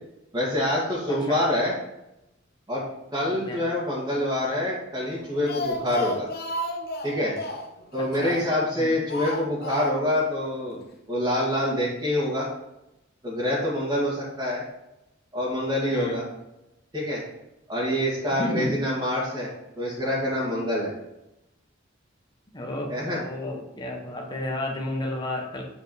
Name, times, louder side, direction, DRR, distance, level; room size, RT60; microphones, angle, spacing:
voice 1, 0.3-1.7 2.7-2.8 3.1-6.3 7.0-7.4 7.9-10.8 11.1-12.5 13.2-14.6 15.3-16.2 16.9-17.2 17.7-20.9 22.9-23.2, left 1 dB, 20° right, -8 dB, 1.8 m, -26 dB
voice 2, 1.1-1.4 3.3-3.6 8.0-8.4 8.7-9.0 15.9-16.2 18.4-18.7 22.5-25.7, left 1 dB, 25° left, 0 dB, 1.5 m, -32 dB
Speech, 5.2-8.7 9.1-10.2 10.5-10.6 10.9-11.0, left 1 dB, 55° left, 0.9 m, -33 dB
7.9 x 4.6 x 4.3 m, 0.91 s
head